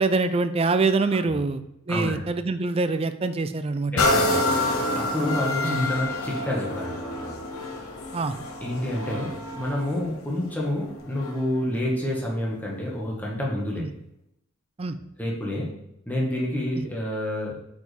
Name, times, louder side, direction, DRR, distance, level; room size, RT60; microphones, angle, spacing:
voice 1, 0.0-3.9 5.6-5.9 8.1-8.4 13.8-13.9 14.8-15.0 16.8-16.9, right 3 dB, 25° right, 11 dB, 0.4 m, -25 dB
voice 2, 3.9-7.4 8.6-13.9 15.2-15.7 16.0-17.6, left 1 dB, 10° left, -3 dB, 1.4 m, -29 dB
sound 1, 4.0-11.6 12.2-12.3, left 2 dB, 85° left, 1.1 m, -28 dB
8.3 x 5.2 x 3.3 m, 0.81 s
head